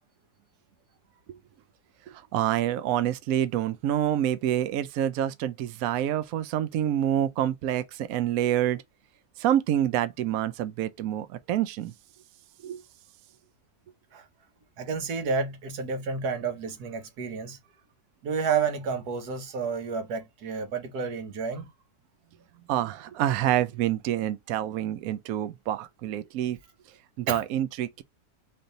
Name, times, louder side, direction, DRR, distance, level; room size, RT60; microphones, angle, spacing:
voice 1, 2.1-8.8 9.4-11.9 12.6-12.8 22.7-26.6 27.2-28.0, right 11 dB, 75° right, 1.0 m, -27 dB
voice 2, 14.8-17.6 18.2-21.7 27.3-27.4, right 5 dB, 90° right, 1.5 m, -30 dB
4.0 x 3.3 x 3.9 m
omnidirectional pair, 1.6 m